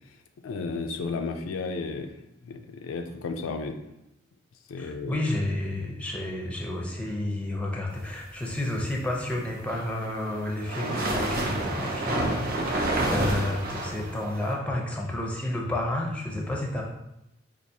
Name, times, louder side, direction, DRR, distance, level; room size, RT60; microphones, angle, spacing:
voice 1, 0.4-2.1 2.4-3.8 4.7-5.2, left 4 dB, 80° left, 6 dB, 0.3 m, -33 dB
voice 2, 4.8-16.8, left 1 dB, 5° left, -1 dB, 0.5 m, -31 dB
sound 1, 9.4-14.5, right 1 dB, 45° right, 0.5 m, -29 dB
4.5 x 2.4 x 2.6 m, 0.87 s
head